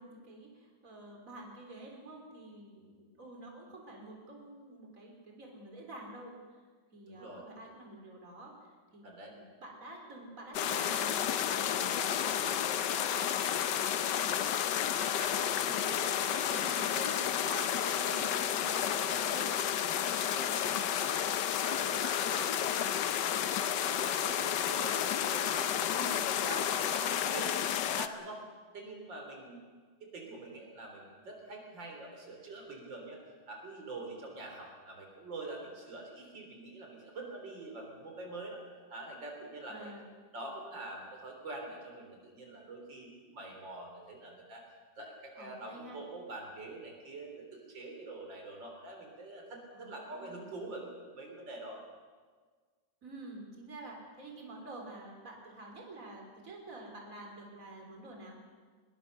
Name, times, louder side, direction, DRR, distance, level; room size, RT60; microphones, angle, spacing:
voice 1, 0.0-6.6 6.9-14.6 16.3-17.2 17.4-18.8 20.4-20.8 26.0-26.3 39.7-40.1 45.3-46.0 49.7-50.5 53.0-58.4, right 2 dB, 45° right, 0 dB, 3.9 m, -49 dB
voice 2, 7.1-7.4 9.0-9.3 15.2-17.1 17.4-19.5 20.0-20.5 20.8-21.3 21.6-25.0 25.3-28.4 28.7-29.6 30.0-33.2 33.5-38.6 38.9-39.9 40.3-44.6 45.0-51.8, right 2 dB, 90° right, 2 dB, 4.4 m, -45 dB
sound 1, 10.5-28.1, left 9 dB, 75° left, 1.5 m, -31 dB
22.0 x 21.5 x 6.7 m, 1.5 s
omnidirectional pair, 1.9 m